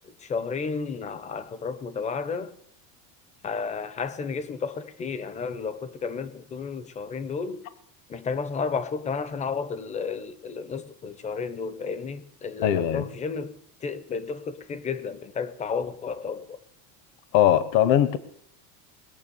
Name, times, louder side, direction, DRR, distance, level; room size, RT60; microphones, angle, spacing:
voice 1, 0.2-2.5 3.4-7.6 8.1-13.5 13.8-16.6, left 5 dB, 15° left, 0.7 m, -32 dB
voice 2, 12.6-13.1 17.3-18.2, left 11 dB, 50° left, 1.0 m, -20 dB
21.0 x 7.1 x 7.0 m
cardioid pair, 155°, 43 cm